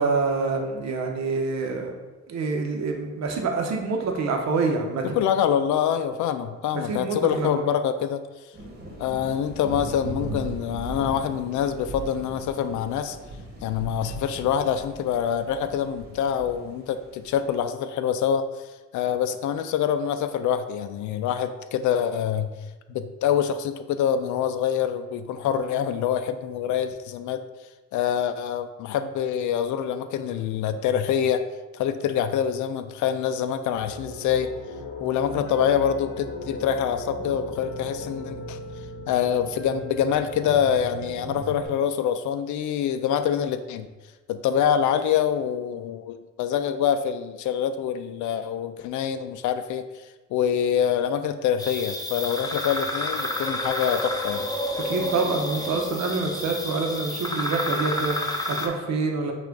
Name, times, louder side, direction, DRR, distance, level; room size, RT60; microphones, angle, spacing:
voice 1, 0.0-1.9 2.3-5.0 6.7-7.6 54.8-59.3, right 4 dB, 65° right, 3 dB, 0.9 m, -26 dB
voice 2, 5.0-8.2 9.0-13.2 13.6-18.5 18.9-22.5 22.9-27.4 27.9-31.4 31.7-34.5 35.0-38.6 39.1-43.9 44.3-49.8 50.3-54.5, left 8 dB, 75° left, 10 dB, 0.4 m, -25 dB
sound 1, 8.5-17.6, right 1 dB, 35° right, 1.3 m, -38 dB
sound 2, 33.7-41.7, left 1 dB, 45° left, 1.2 m, -37 dB
sound 3, 51.6-58.7, left 1 dB, 15° left, 0.6 m, -29 dB
5.7 x 2.5 x 3.7 m, 1.2 s
cardioid pair, 90°, 30 cm